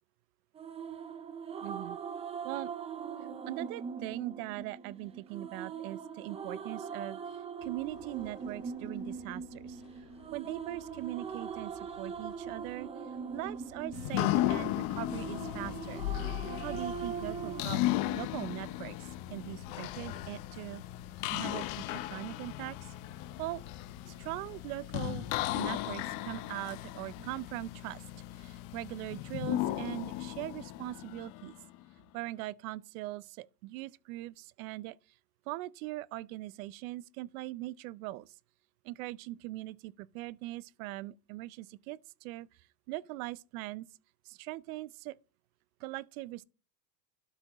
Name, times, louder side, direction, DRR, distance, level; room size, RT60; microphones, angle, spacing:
sound 1, 0.6-17.6, right 6 dB, 15° right, 0.4 m, -41 dB
voice 1, 1.6-2.0 2.4-2.7 3.5-7.2 7.6-9.8 10.3-12.9 13.3-16.0 16.6-17.8 18.1-20.8 21.3-22.9 23.4-23.6 24.0-25.3 25.5-28.1 28.3-31.5 32.1-35.0 35.5-38.3 38.8-42.5 42.9-43.9 44.2-45.2 45.8-46.4, right 18 dB, 55° right, 0.6 m, -41 dB
sound 2, 7.6-25.6, left 7 dB, 75° left, 1.8 m, -58 dB
sound 3, 13.9-31.8, left 15 dB, 45° left, 0.6 m, -36 dB
12.5 x 5.7 x 2.9 m
supercardioid pair, 125°, 49 cm